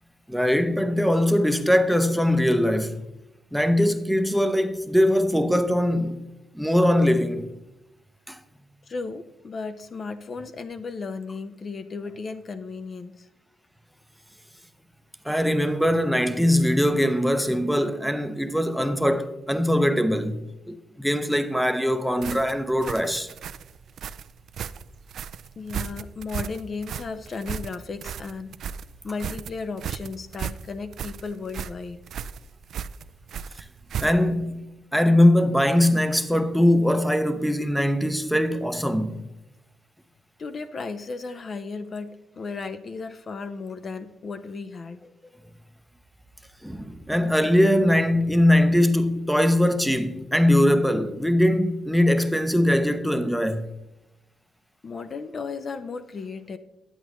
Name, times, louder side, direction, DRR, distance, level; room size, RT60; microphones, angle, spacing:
voice 1, 0.3-3.0 3.5-6.2 6.5-7.5 8.3-8.4 15.2-20.4 20.7-23.3 34.0-34.6 34.9-39.2 46.6-53.7, left 1 dB, ahead, 0.6 m, -21 dB
voice 2, 8.9-13.3 25.6-28.6 29.0-32.0 40.4-45.0 54.8-56.6, left 4 dB, 40° left, 0.5 m, -35 dB
sound 1, 22.2-34.4, right 8 dB, 65° right, 0.3 m, -35 dB
10.0 x 8.6 x 3.0 m
cardioid pair, 90°, 0 cm